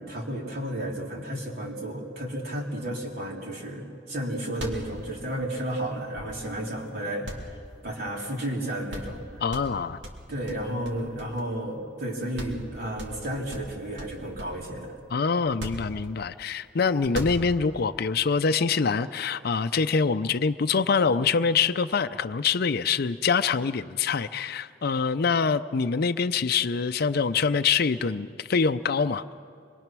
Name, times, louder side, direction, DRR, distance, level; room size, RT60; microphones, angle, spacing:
voice 1, 0.0-7.3 7.8-9.4 10.3-14.9, right 1 dB, 55° right, -2 dB, 3.8 m, -32 dB
sound 1, 4.2-4.3 4.5-6.7 7.2-8.3 8.6-8.7 8.9-9.2 9.5-11.7 12.0-12.1 12.4-12.7 13.0-14.7 15.4-16.4 17.0-17.8, equal, 75° right, 2.8 m, -38 dB
voice 2, 9.4-10.0 15.1-29.2, left 5 dB, 55° left, 10 dB, 0.5 m, -25 dB
26.0 x 22.5 x 6.1 m, 2.4 s
head